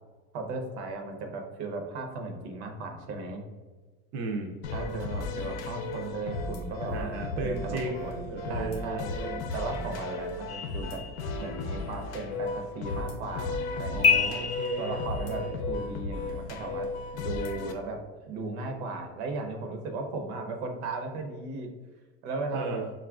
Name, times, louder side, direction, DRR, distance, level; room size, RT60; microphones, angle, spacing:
voice 1, 0.3-3.4 4.7-9.0 9.5-11.0 11.3-14.2 14.8-16.9 17.1-18.0 18.3-21.7 22.2-22.8, right 3 dB, 80° right, 4 dB, 0.8 m, -36 dB
voice 2, 4.1-4.6 6.9-9.5 13.9-15.6 22.5-22.9, right 3 dB, 50° right, 1 dB, 0.5 m, -35 dB
sound 1, 4.6-17.7, left 3 dB, 85° left, 0.6 m, -35 dB
sound 2, 10.5-11.7 14.0-15.5, left 6 dB, 20° left, 0.5 m, -28 dB
5.3 x 2.4 x 2.3 m, 1.3 s
cardioid pair, 160°, 32 cm